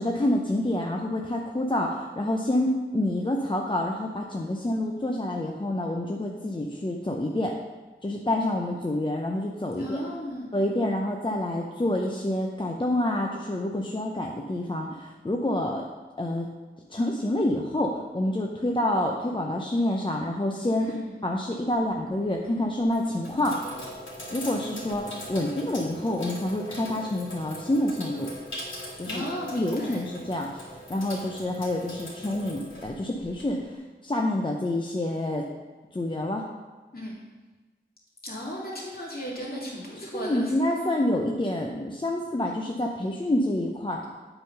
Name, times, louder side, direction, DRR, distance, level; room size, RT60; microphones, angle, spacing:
voice 1, 0.0-7.6 8.0-10.0 10.5-15.8 16.2-16.5 16.9-20.9 21.2-23.6 24.3-28.3 29.0-29.2 29.5-33.8 34.0-35.5 35.9-36.4 40.1-44.0, left 1 dB, 25° left, 0 dB, 0.6 m, -27 dB
voice 2, 9.8-10.5 20.8-21.2 29.0-30.0 36.9-37.1 38.2-40.5, equal, 50° left, -5 dB, 2.4 m, -35 dB
Sink (filling or washing), 21.7-22.2 22.8-33.7, equal, 80° left, 2.1 m, -40 dB
7.9 x 3.8 x 5.6 m, 1.3 s
wide cardioid pair, 65°, 20 cm